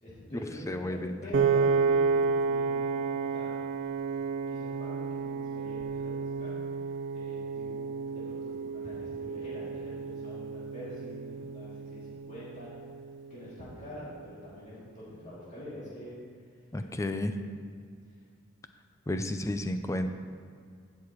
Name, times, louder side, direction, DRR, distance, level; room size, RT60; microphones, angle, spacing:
voice 1, 0.0-3.5 4.5-6.6 7.1-12.7 13.3-16.2 16.8-16.9 17.3-17.5, left 1 dB, 40° left, -9 dB, 2.7 m, -46 dB
voice 2, 0.7-1.2 16.7-17.3 19.1-20.1, left 1 dB, 15° left, 7 dB, 0.5 m, -32 dB
Piano, 1.3-13.6, right 5 dB, 65° right, 0.5 m, -31 dB
15.5 x 6.6 x 3.1 m, 2.1 s
head